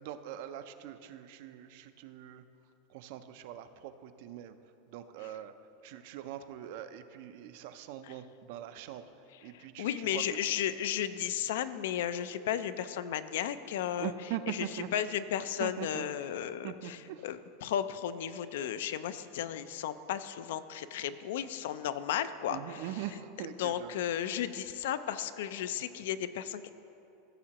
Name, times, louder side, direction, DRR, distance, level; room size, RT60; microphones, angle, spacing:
voice 1, 0.0-2.4 2.9-4.6 4.9-5.5 5.8-9.0 9.4-10.4 14.0-14.9 15.6-16.1 16.6-17.3 22.5-24.0, right 11 dB, 55° right, 11 dB, 0.5 m, -42 dB
voice 2, 9.5-14.1 14.5-14.7 14.9-22.8 23.6-26.7, left 10 dB, 75° left, 12 dB, 0.4 m, -34 dB
16.0 x 7.3 x 2.9 m, 2.8 s
supercardioid pair, 155°, 0 cm